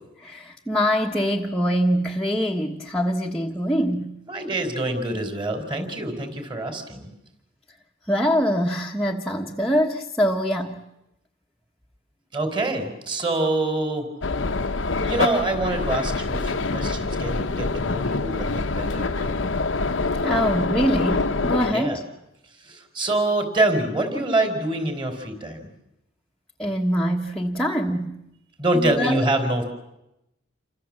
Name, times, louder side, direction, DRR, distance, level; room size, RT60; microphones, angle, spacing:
voice 1, 0.2-4.1 8.1-10.8 20.2-22.0 26.6-28.2 28.7-29.3, equal, 5° left, -1 dB, 1.3 m, -24 dB
voice 2, 4.3-7.1 12.3-14.1 15.0-19.3 21.7-22.0 22.6-25.7 28.6-29.6, right 2 dB, 25° right, 6 dB, 4.3 m, -25 dB
sound 1, 14.2-21.7, left 3 dB, 80° left, 1.0 m, -25 dB
29.0 x 26.0 x 7.6 m, 0.90 s
head